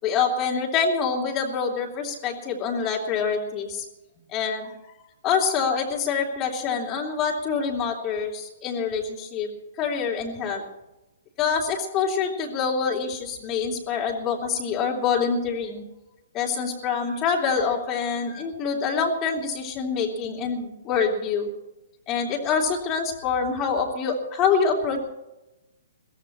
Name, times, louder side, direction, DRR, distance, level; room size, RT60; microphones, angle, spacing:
voice 1, 0.0-3.9 4.3-4.7 5.2-9.5 9.8-10.6 11.4-15.8 16.3-21.5 22.1-25.0, left 6 dB, 25° left, -2 dB, 3.3 m, -26 dB
22.5 x 16.5 x 3.1 m, 0.96 s
figure-of-eight pair, 120°, 0 cm